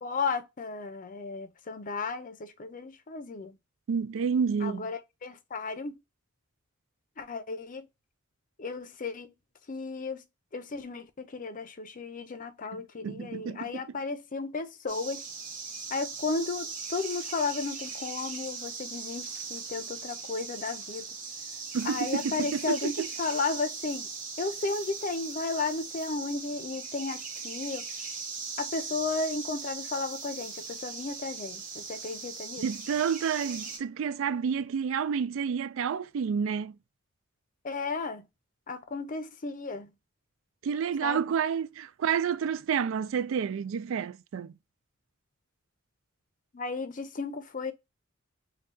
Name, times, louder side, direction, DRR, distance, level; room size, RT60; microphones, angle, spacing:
voice 1, 0.0-3.6 4.6-5.9 7.2-7.9 8.6-9.3 9.7-10.2 10.5-15.2 15.9-21.0 21.8-22.9 23.2-24.1 24.4-27.8 28.6-32.6 37.6-38.3 38.7-39.9 41.0-41.2 46.5-47.7, left 4 dB, 40° left, 0.5 m, -34 dB
voice 2, 3.9-4.9 12.7-13.8 21.7-23.1 32.6-36.8 40.6-44.5, right 7 dB, 70° right, 0.3 m, -30 dB
sound 1, 14.9-33.8, right 5 dB, 40° right, 1.2 m, -39 dB
5.4 x 2.3 x 2.6 m
head